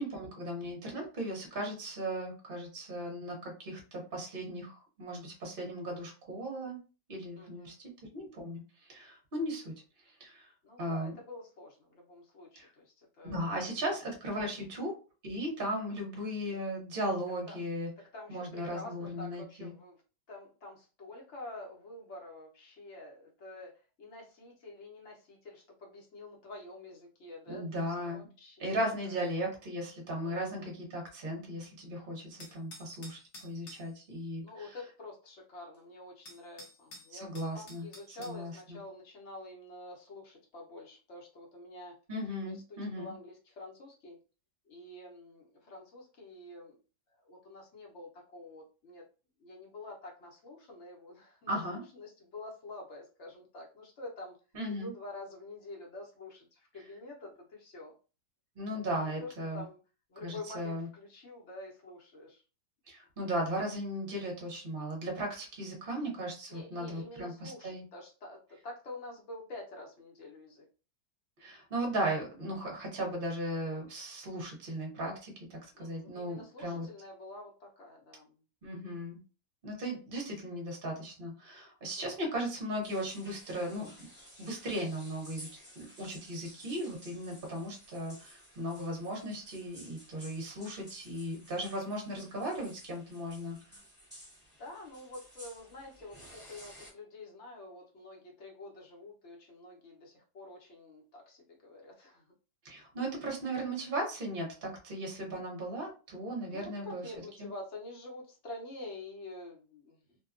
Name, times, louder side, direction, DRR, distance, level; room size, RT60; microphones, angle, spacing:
voice 1, 0.0-6.8 7.1-7.7 8.1-9.7 10.0-10.5 10.8-11.1 12.5-12.7 13.2-15.0 15.2-17.9 18.3-19.7 27.5-28.3 28.6-34.8 37.1-38.8 42.1-43.1 51.5-51.8 54.5-54.9 58.6-59.6 60.2-60.9 62.9-67.8 71.4-76.9 78.6-79.2 79.6-83.9 84.4-85.5 85.7-93.8 102.6-107.0 107.4-107.5, right 1 dB, 40° right, -1 dB, 0.9 m, -37 dB
voice 2, 7.4-7.7 10.6-13.7 17.5-17.6 18.1-20.0 20.3-23.7 24.0-29.2 30.2-30.7 34.3-42.0 42.4-44.2 44.7-46.8 47.2-49.0 49.4-54.4 54.7-57.9 58.9-59.8 60.1-62.4 66.5-70.7 75.7-78.4 78.6-79.0 82.0-82.3 94.6-102.2 106.5-110.2, left 2 dB, 55° left, -1 dB, 0.9 m, -48 dB
sound 1, 32.4-33.9 35.7-35.8 36.3-38.4, left 1 dB, 75° left, 0.5 m, -51 dB
sound 2, 82.8-96.9, equal, 10° right, 0.8 m, -54 dB
2.8 x 2.2 x 2.4 m, 0.34 s
omnidirectional pair, 1.8 m